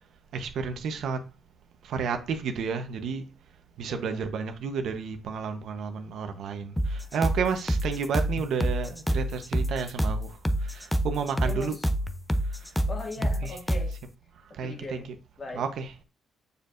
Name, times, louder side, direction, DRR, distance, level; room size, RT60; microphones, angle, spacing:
voice 1, 0.3-1.2 1.8-3.3 3.8-11.8 12.4-12.8 13.2-13.6 14.4-15.2 15.5-16.0, right 6 dB, 75° right, 1.0 m, -32 dB
voice 2, 3.9-4.2 11.4-11.8 12.9-14.0 14.5-15.7, left 2 dB, 40° left, 2.2 m, -40 dB
sound 1, 6.8-14.0, equal, 5° left, 0.6 m, -27 dB
6.8 x 6.7 x 2.6 m
cardioid pair, 90°, 0 cm